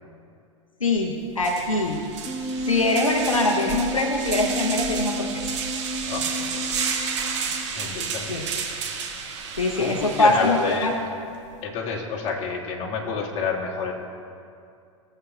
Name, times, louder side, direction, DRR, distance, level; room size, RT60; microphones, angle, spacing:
voice 1, 0.8-2.0 2.6-5.6 8.3-8.4 9.6-10.9, left 2 dB, 90° left, 1 dB, 0.8 m, -23 dB
sound 1, 0.9-1.0 1.4-11.0, right 6 dB, 60° right, 1.3 m, -31 dB
Wind instrument woodwind instrument, 2.3-7.7, left 1 dB, 10° left, 1.3 m, -32 dB
voice 2, 6.0-7.0 7.4-8.5 9.3-10.9 11.6-13.9, left 5 dB, 40° left, -2 dB, 1.7 m, -30 dB
17.0 x 7.8 x 2.3 m, 2.4 s
figure-of-eight pair, 90°, 17 cm